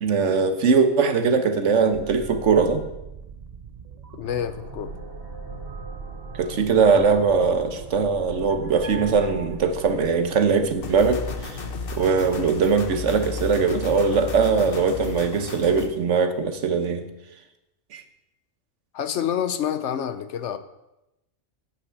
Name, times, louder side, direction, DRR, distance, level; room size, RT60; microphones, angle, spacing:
voice 1, 0.0-2.8 6.4-11.6 11.9-17.1 17.9-18.0, right 5 dB, 85° right, 7 dB, 1.3 m, -21 dB
sound 1, 1.9-10.1, right 6 dB, 40° right, 0.7 m, -40 dB
voice 2, 4.1-4.9 18.9-20.6, left 9 dB, 75° left, 10 dB, 1.0 m, -27 dB
sound 2, 4.2-12.8, right 1 dB, 60° right, 1.9 m, -43 dB
sound 3, 10.8-15.9, left 4 dB, 55° left, 1.0 m, -33 dB
9.0 x 5.9 x 8.1 m, 0.92 s
omnidirectional pair, 1.2 m